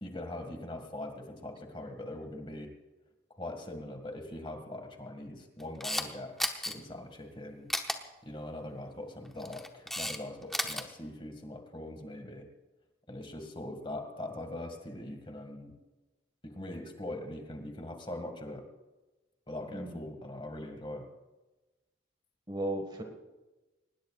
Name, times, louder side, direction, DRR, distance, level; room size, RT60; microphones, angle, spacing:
voice 1, 0.0-2.7 3.4-7.7 8.2-12.5 13.1-15.8 16.4-18.7 19.5-21.1, left 1 dB, 25° left, 5 dB, 1.9 m, -42 dB
Camera, 5.6-6.1 6.4-6.7 7.7-8.0 9.3-10.2 10.4-10.8, left 1 dB, ahead, 0.9 m, -33 dB
voice 2, 19.7-20.0 22.5-23.0, right 1 dB, 25° right, 4 dB, 1.6 m, -35 dB
24.0 x 20.0 x 2.4 m, 1.1 s
head